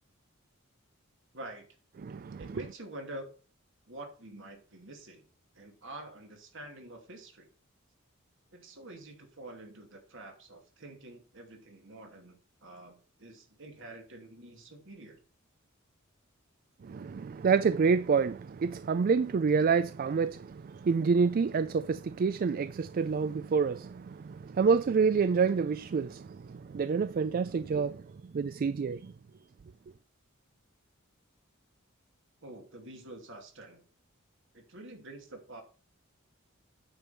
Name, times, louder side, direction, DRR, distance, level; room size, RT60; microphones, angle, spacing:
voice 1, 1.3-1.6 2.4-3.3 3.9-5.2 5.5-7.5 8.5-15.2 32.4-33.8 34.5-35.6, right 1 dB, 65° right, 2.5 m, -47 dB
voice 2, 2.0-2.4 16.8-28.0 28.3-29.1, right 5 dB, 45° right, 0.3 m, -28 dB
9.0 x 5.3 x 5.7 m
head